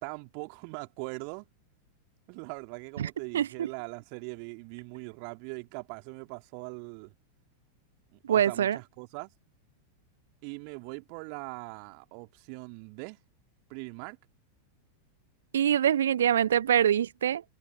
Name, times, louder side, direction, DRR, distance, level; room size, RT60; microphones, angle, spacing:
voice 1, 0.0-1.5 2.3-7.1 8.1-9.3 10.4-13.2 13.7-14.2, right 40 dB or more, 45° right, 2.4 m, -41 dB
voice 2, 3.0-3.7 8.2-8.8 15.5-17.4, right 10 dB, 65° right, 0.5 m, -25 dB
figure-of-eight pair, 90°, 0 cm